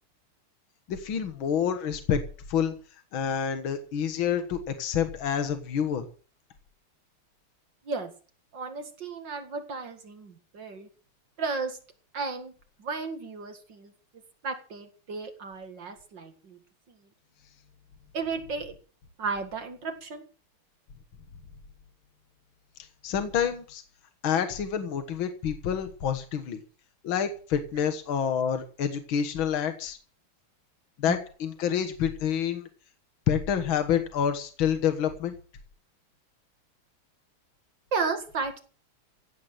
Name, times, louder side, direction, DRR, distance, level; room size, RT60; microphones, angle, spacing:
voice 1, 0.9-2.2 2.5-2.7 3.1-6.1 23.0-23.8 24.2-26.6 27.0-30.0 31.0-32.7 33.3-35.4, left 8 dB, 65° left, 8 dB, 2.2 m, -28 dB
voice 2, 8.5-10.9 11.4-11.8 12.1-12.5 12.8-13.9 14.4-16.6 16.9-17.0 18.1-18.8 19.2-20.2 31.1-31.2 37.9-38.6, right 4 dB, 55° right, 7 dB, 2.6 m, -33 dB
16.0 x 8.4 x 7.3 m, 0.39 s
omnidirectional pair, 2.4 m